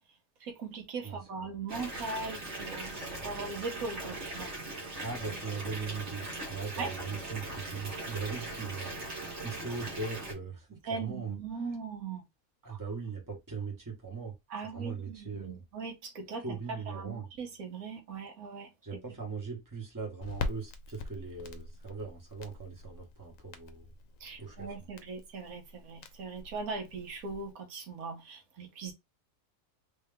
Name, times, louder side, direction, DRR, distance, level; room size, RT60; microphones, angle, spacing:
voice 1, 0.4-4.5 6.8-6.9 10.9-12.2 12.7-12.8 14.5-16.6 16.9-18.7 24.2-28.9, right 4 dB, 85° right, 1.5 m, -39 dB
voice 2, 1.0-1.5 5.0-8.9 9.4-11.4 12.6-14.3 14.6-15.6 16.4-17.3 18.8-23.9 24.4-24.7, right 5 dB, 15° right, 1.3 m, -40 dB
Water tap faucet / Bathtub (filling or washing) / Fill (with liquid), 1.7-10.3, right 2 dB, 55° right, 1.7 m, -40 dB
Crackle, 20.2-27.5, left 3 dB, 70° left, 1.0 m, -43 dB
3.4 x 2.8 x 3.4 m
omnidirectional pair, 1.5 m